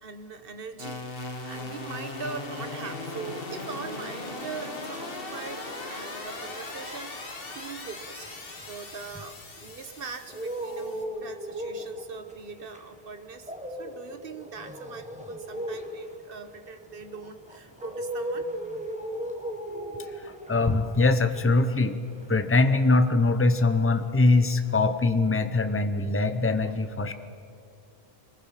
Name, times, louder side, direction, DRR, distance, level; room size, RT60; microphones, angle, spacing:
voice 1, 0.0-8.3 8.7-18.5 27.0-27.1, right 5 dB, 60° right, 9 dB, 1.3 m, -41 dB
sound 1, 0.8-11.0, left 2 dB, 60° left, 1.7 m, -38 dB
sound 2, 6.5-9.7 10.1-23.5 23.8-24.8, equal, 5° right, 1.6 m, -38 dB
voice 2, 20.2-22.0 22.3-27.1, left 3 dB, 15° left, 9 dB, 0.7 m, -22 dB
23.0 x 19.5 x 5.8 m, 2.4 s
omnidirectional pair, 1.1 m